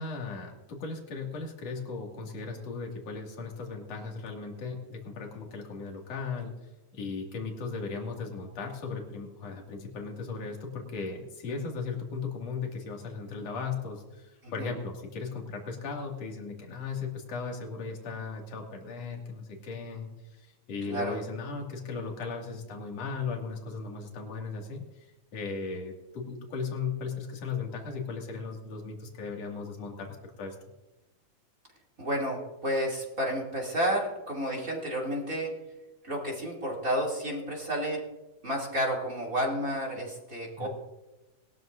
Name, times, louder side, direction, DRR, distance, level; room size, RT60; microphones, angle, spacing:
voice 1, 0.0-6.5 6.9-25.1 25.3-30.6 40.6-40.7, left 4 dB, 60° left, 1 dB, 3.3 m, -37 dB
voice 2, 20.8-21.2 32.0-35.5 36.0-38.0 38.4-40.7, equal, 30° right, -1 dB, 2.9 m, -31 dB
21.0 x 13.0 x 2.6 m, 1.1 s
omnidirectional pair, 3.4 m